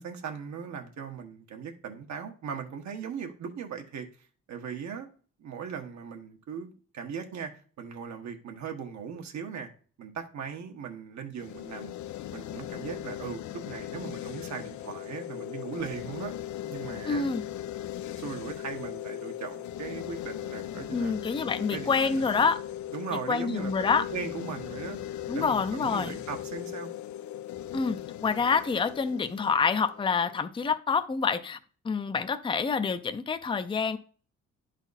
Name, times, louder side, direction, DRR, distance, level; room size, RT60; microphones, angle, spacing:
voice 1, 0.0-4.1 4.5-5.1 5.4-7.5 7.8-9.7 10.0-11.9 12.3-16.3 16.7-17.3 18.2-21.2 21.7-22.4 22.9-25.0 25.3-26.9, right 6 dB, 65° right, 4 dB, 1.5 m, -39 dB
sound 1, 11.4-30.5, left 12 dB, 70° left, 0.5 m, -39 dB
voice 2, 17.1-17.4 20.9-22.6 23.3-24.0 25.3-26.2 27.7-31.6 31.8-34.0, left 5 dB, 15° left, 9 dB, 0.5 m, -27 dB
10.5 x 4.1 x 4.1 m, 0.41 s
cardioid pair, 90°, 30 cm